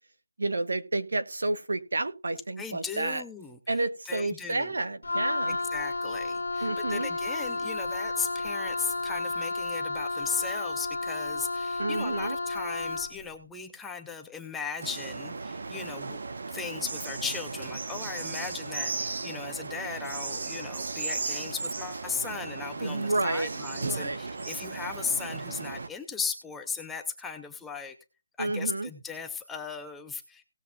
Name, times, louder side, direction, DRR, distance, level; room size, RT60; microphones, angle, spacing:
voice 1, 0.4-3.2 3.7-5.6 6.6-7.1 11.8-12.4 22.8-23.5 23.7-24.2 28.4-28.9, right 2 dB, 80° right, 9 dB, 1.8 m, -30 dB
voice 2, 2.6-4.8 5.5-16.2 16.5-27.9 28.4-30.4, left 5 dB, 5° left, 4 dB, 0.6 m, -37 dB
Wind instrument woodwind instrument, 5.0-13.2, left 3 dB, 85° left, 1.1 m, -32 dB
sound 1, 14.8-25.9, right 3 dB, 45° right, 1.0 m, -36 dB
18.0 x 7.1 x 2.7 m, 0.30 s
hypercardioid pair, 180°, 0 cm